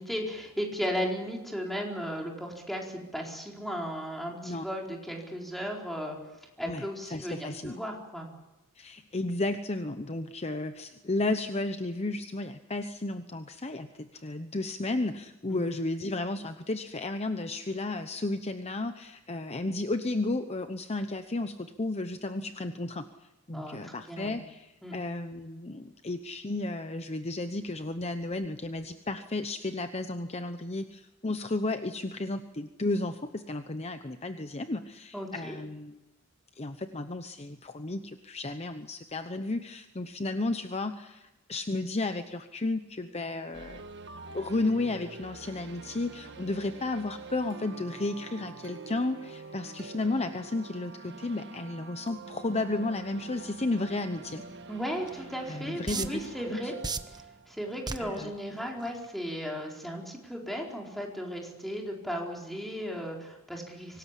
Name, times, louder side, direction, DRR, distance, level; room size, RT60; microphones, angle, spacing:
voice 1, 0.0-6.2 6.6-8.3 15.5-15.6 23.5-24.4 24.8-25.0 35.1-35.6 54.7-56.7 57.1-57.2 57.5-64.0, equal, ahead, 0 dB, 4.3 m, -35 dB
voice 2, 7.1-7.8 8.8-23.1 23.5-36.0 36.6-43.8 44.3-54.4 55.5-56.2 56.5-56.7 58.0-58.3, left 2 dB, 30° left, 9 dB, 0.9 m, -33 dB
sound 1, 43.5-58.4, right 3 dB, 55° right, 1.6 m, -46 dB
sound 2, 55.1-55.2 55.9-56.3 56.8-57.2 57.9-58.2 58.9-59.1, right 4 dB, 20° right, 1.0 m, -32 dB
25.0 x 19.0 x 8.4 m, 1.0 s
head